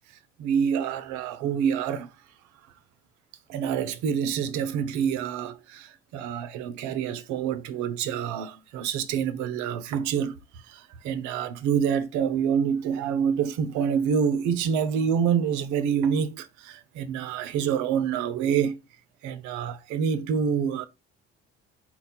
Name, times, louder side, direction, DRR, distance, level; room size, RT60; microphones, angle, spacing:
voice 1, 0.4-2.1 3.5-10.4 10.7-18.8 19.2-20.9, right 7 dB, 80° right, 0.6 m, -27 dB
4.2 x 2.2 x 4.2 m
supercardioid pair, 60°, 29 cm